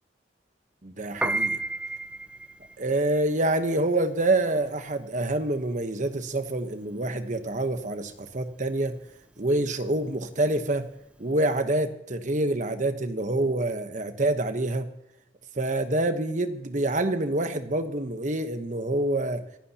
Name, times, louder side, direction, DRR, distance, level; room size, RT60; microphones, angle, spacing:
voice 1, 0.8-1.6 2.8-9.0 9.4-10.9 11.2-14.9 15.6-19.4, right 2 dB, 45° right, 8 dB, 1.1 m, -26 dB
Piano, 1.1-11.5, right 2 dB, 5° right, 0.5 m, -35 dB
25.5 x 11.0 x 2.9 m, 0.83 s
head